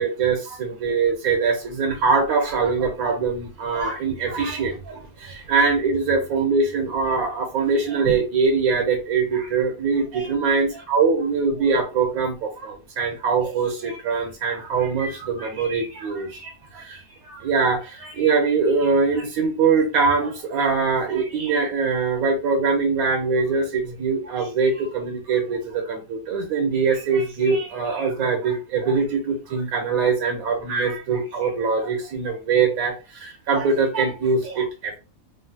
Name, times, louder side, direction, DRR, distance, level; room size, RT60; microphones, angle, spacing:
voice 1, 0.0-35.0, right 4 dB, 85° right, 2 dB, 1.2 m, -23 dB
3.1 x 2.5 x 2.7 m, 0.30 s
omnidirectional pair, 1.5 m